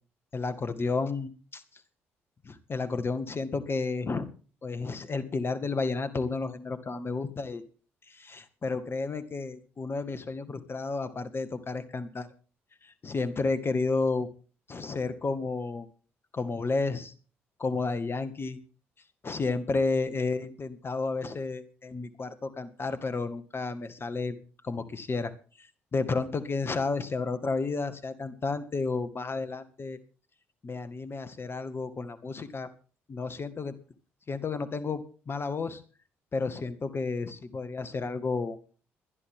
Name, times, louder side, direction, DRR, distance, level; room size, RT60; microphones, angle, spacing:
voice 1, 0.3-1.6 2.4-4.3 4.6-7.6 8.1-12.3 12.8-14.3 14.7-15.9 16.3-17.1 17.6-18.6 19.2-24.4 24.6-25.3 25.9-30.0 30.6-32.7 33.1-33.8 34.3-35.8 36.3-38.6, left 3 dB, 35° left, 10 dB, 1.9 m, -31 dB
22.0 x 11.0 x 3.8 m, 0.39 s
figure-of-eight pair, 45°, 7 cm